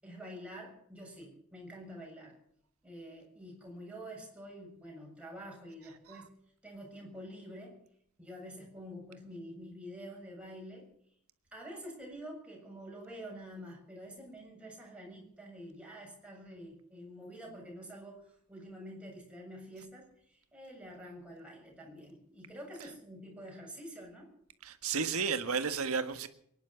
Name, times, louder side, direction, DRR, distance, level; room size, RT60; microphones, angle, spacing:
voice 1, 0.0-2.4 2.8-6.3 6.6-7.8 8.2-10.9 11.5-24.3, equal, 5° right, 7.4 m, -47 dB
voice 2, 24.6-26.3, right 5 dB, 90° right, 1.5 m, -32 dB
23.5 x 10.5 x 5.9 m
head